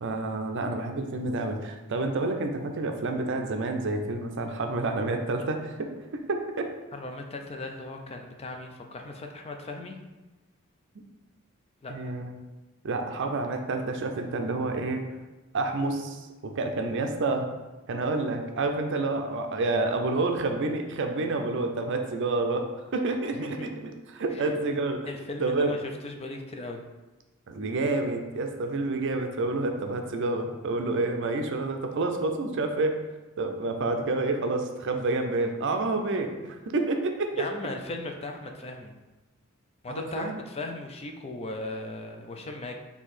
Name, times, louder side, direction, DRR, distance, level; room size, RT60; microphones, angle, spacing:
voice 1, 0.0-6.7 11.9-12.3 12.8-15.0 15.5-17.5 17.9-23.7 24.1-25.1 25.4-25.8 27.5-33.0 33.4-37.5 39.9-40.4, right 2 dB, 60° right, 5 dB, 0.5 m, -29 dB
voice 2, 6.9-10.0 11.8-12.2 23.3-23.7 24.3-24.5 25.1-26.8 37.3-38.9 39.8-42.8, left 2 dB, 30° left, 3 dB, 0.4 m, -37 dB
4.5 x 2.8 x 4.1 m, 1.1 s
head